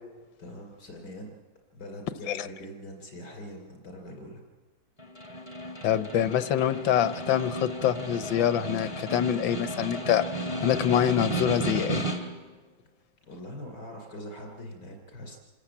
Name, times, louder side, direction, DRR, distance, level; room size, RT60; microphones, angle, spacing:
voice 1, 0.4-1.4 1.7-4.4 13.2-15.4, equal, 60° left, 3 dB, 3.8 m, -43 dB
Snare drum, 5.0-12.5, right 1 dB, 15° left, 2.4 m, -33 dB
voice 2, 5.8-10.2 10.6-12.0, left 10 dB, 80° left, 12 dB, 1.6 m, -25 dB
27.0 x 14.5 x 8.7 m, 1.4 s
omnidirectional pair, 2.1 m